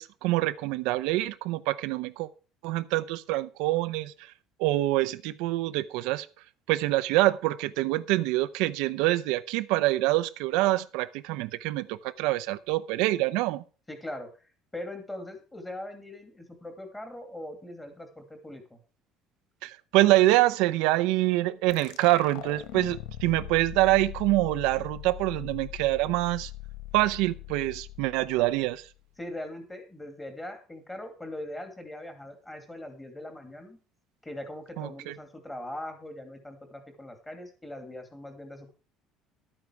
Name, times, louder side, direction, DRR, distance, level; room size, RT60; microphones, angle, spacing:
voice 1, 0.0-2.3 2.6-4.3 4.6-6.3 6.7-13.6 19.6-26.5 26.9-28.9 34.8-35.1, right 17 dB, 85° right, 12 dB, 0.7 m, -25 dB
voice 2, 13.9-14.4 14.7-18.8 29.2-33.8 34.2-38.7, left 1 dB, 10° left, 5 dB, 2.5 m, -41 dB
sound 1, 21.7-29.0, left 14 dB, 90° left, 1.1 m, -41 dB
12.0 x 8.7 x 4.6 m, 0.36 s
cardioid pair, 160°, 0 cm